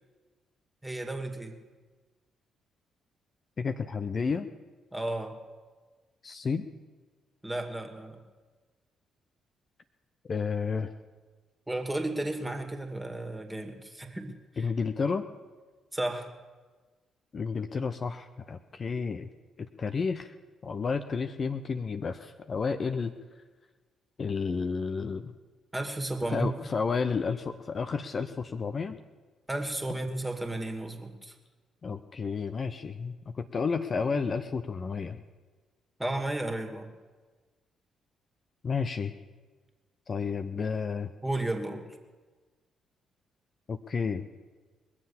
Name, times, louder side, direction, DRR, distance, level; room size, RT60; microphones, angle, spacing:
voice 1, 0.8-1.5 4.9-5.4 7.4-8.2 11.7-14.7 15.9-16.3 25.7-26.7 29.5-31.4 36.0-36.9 41.2-41.8, right 1 dB, 10° right, 4 dB, 2.2 m, -33 dB
voice 2, 3.6-4.5 6.2-6.7 10.3-10.9 14.6-15.3 17.3-19.3 19.6-20.3 20.6-23.1 24.2-25.3 26.3-29.0 31.8-35.2 38.6-39.1 40.1-41.1 43.7-44.3, left 5 dB, 40° left, 8 dB, 0.7 m, -31 dB
21.5 x 7.4 x 7.1 m, 1.4 s
figure-of-eight pair, 40°, 0 cm